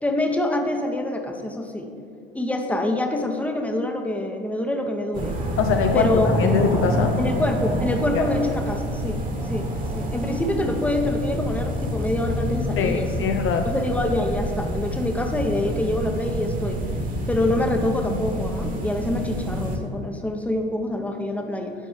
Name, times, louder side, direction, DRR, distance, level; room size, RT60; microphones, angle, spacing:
voice 1, 0.0-1.9 2.3-5.4 5.9-6.3 7.2-13.3 13.6-16.8 17.3-21.7, left 1 dB, 5° left, 4 dB, 1.0 m, -26 dB
sound 1, 5.1-19.8, equal, 25° right, 1.6 m, -27 dB
voice 2, 5.6-7.2 8.1-8.3 12.8-13.7, left 7 dB, 45° left, 5 dB, 0.7 m, -23 dB
11.5 x 5.2 x 4.9 m, 2.5 s
hypercardioid pair, 70°, 31 cm